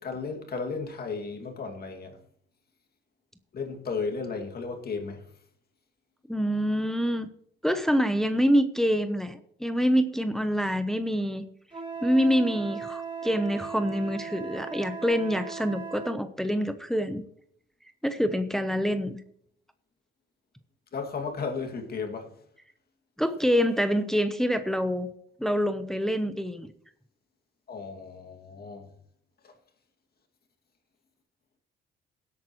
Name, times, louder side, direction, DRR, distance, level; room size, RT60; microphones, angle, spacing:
voice 1, 0.0-2.2 3.5-5.3 20.9-22.3 27.7-28.9 29.4-29.5, left 4 dB, 50° left, 2.4 m, -34 dB
voice 2, 6.3-7.3 7.6-11.4 12.0-17.2 18.0-19.2 23.2-25.1 25.4-26.7, equal, ahead, 0.8 m, -26 dB
Wind instrument woodwind instrument, 11.7-16.2, right 6 dB, 25° right, 4.0 m, -38 dB
17.0 x 8.6 x 3.1 m
cardioid pair, 90°, 20 cm